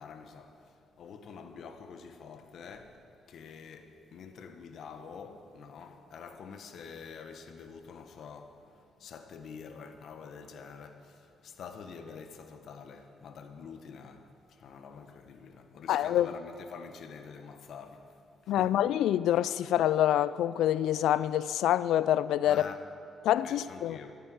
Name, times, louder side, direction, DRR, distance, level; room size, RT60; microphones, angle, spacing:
voice 1, 0.0-18.8 22.4-22.8 23.4-24.2, left 6 dB, 65° left, 1.4 m, -47 dB
voice 2, 15.9-16.3 18.5-22.6 23.2-24.0, left 12 dB, 85° left, 0.4 m, -26 dB
14.0 x 11.0 x 7.8 m
cardioid pair, 90°, 0 cm